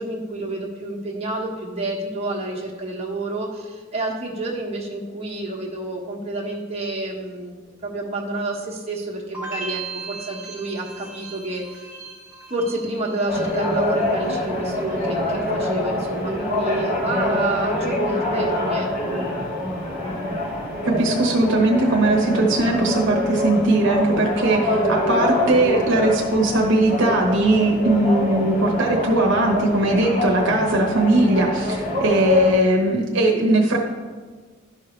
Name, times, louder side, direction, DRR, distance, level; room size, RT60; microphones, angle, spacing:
voice 1, 0.0-11.9 12.5-19.2, right 2 dB, 30° right, -4 dB, 1.3 m, -29 dB
sound 1, 9.3-14.4 14.7-15.3, right 4 dB, 5° right, 1.6 m, -37 dB
sound 2, 13.3-32.5, left 1 dB, 45° left, 2.3 m, -25 dB
voice 2, 20.8-33.8, right 2 dB, 65° right, 0 dB, 1.0 m, -19 dB
11.5 x 5.6 x 3.2 m, 1.5 s
head